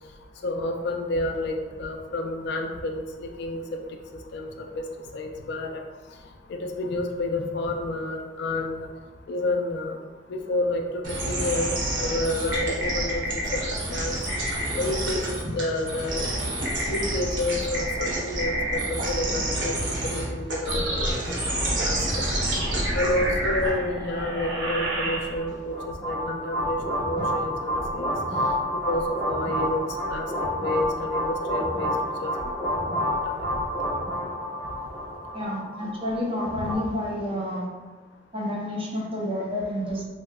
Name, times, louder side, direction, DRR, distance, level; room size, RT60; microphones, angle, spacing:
voice 1, 0.4-3.6 4.3-4.5 4.7-4.8 5.1-5.8 6.5-8.9 9.3-10.0 10.3-11.7 12.0-13.6 13.9-14.2 14.7-15.2 15.5-16.3 16.9-19.7 20.0-22.2 22.9-28.1 28.9-29.8 30.1-30.3 30.6-31.9 32.2-33.1 36.6-36.7, left 2 dB, 65° left, 3 dB, 0.3 m, -29 dB
sound 1, 11.0-25.6, right 1 dB, 85° right, 0.8 m, -28 dB
sound 2, 25.4-36.7, equal, 20° left, 1.0 m, -29 dB
voice 2, 35.3-37.7 38.3-40.0, left 1 dB, 30° right, -3 dB, 0.6 m, -29 dB
3.2 x 2.7 x 2.2 m, 1.3 s
head